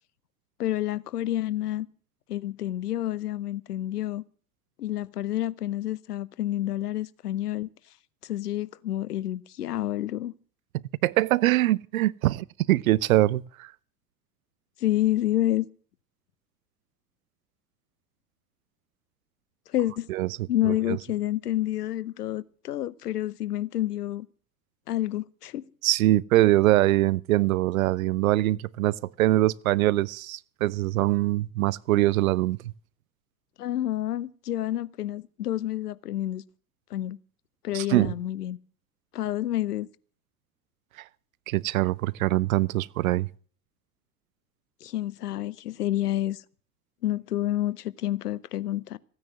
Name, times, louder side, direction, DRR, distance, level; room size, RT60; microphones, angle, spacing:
voice 1, 0.6-1.9 2.3-4.2 4.8-7.7 8.2-10.3 14.8-15.7 19.7-20.1 20.5-24.3 24.9-25.6 33.6-36.4 36.9-37.2 37.6-38.6 39.1-39.9 44.8-46.4 47.0-49.0, left 13 dB, 70° left, 0.8 m, -29 dB
voice 2, 10.7-13.7 20.1-20.3 20.7-21.0 25.8-32.7 37.7-38.1 41.5-43.3, right 16 dB, 60° right, 0.6 m, -23 dB
15.5 x 9.6 x 7.4 m
figure-of-eight pair, 85°, 48 cm